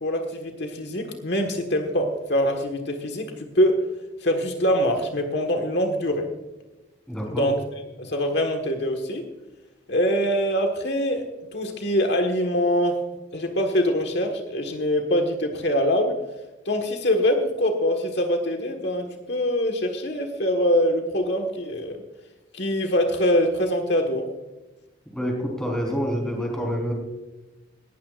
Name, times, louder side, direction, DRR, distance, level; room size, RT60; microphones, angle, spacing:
voice 1, 0.0-3.8 4.2-6.3 7.3-7.6 8.0-9.2 9.9-11.2 11.5-13.0 13.3-16.1 16.6-22.0 22.5-24.3, equal, 60° left, 3 dB, 1.6 m, -24 dB
voice 2, 7.1-7.5 25.1-26.9, equal, 5° left, 0 dB, 4.1 m, -27 dB
19.5 x 15.5 x 2.5 m, 1.1 s
head